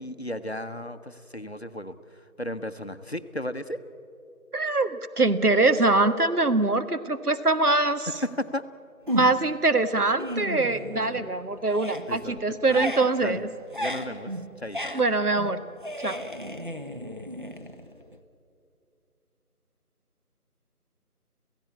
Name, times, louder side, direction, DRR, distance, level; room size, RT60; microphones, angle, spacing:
voice 1, 0.0-1.9 2.4-3.8 8.2-8.6 12.1-13.4 13.7-14.3 14.6-14.9, left 1 dB, 45° left, 10 dB, 0.8 m, -34 dB
voice 2, 4.5-8.1 9.1-13.5 14.9-15.6 16.0-16.2, right 2 dB, 80° right, 11 dB, 1.6 m, -23 dB
sound 1, 9.1-9.6 10.0-11.4 11.6-18.2, equal, 35° right, 1.0 m, -35 dB
28.0 x 16.0 x 8.5 m, 2.6 s
figure-of-eight pair, 170°, 45 cm